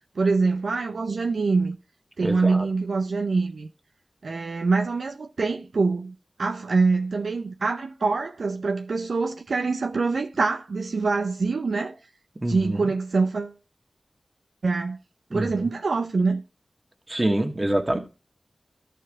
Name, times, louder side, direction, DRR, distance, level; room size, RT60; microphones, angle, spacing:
voice 1, 0.2-1.8 2.2-3.7 4.2-12.0 12.5-13.5 14.6-15.0 15.3-16.4, right 4 dB, 85° right, 0.5 m, -25 dB
voice 2, 2.2-2.7 12.4-12.9 15.3-15.7 17.1-18.0, right 1 dB, 30° right, 1.6 m, -26 dB
13.5 x 4.6 x 3.5 m
cardioid pair, 45°, 0 cm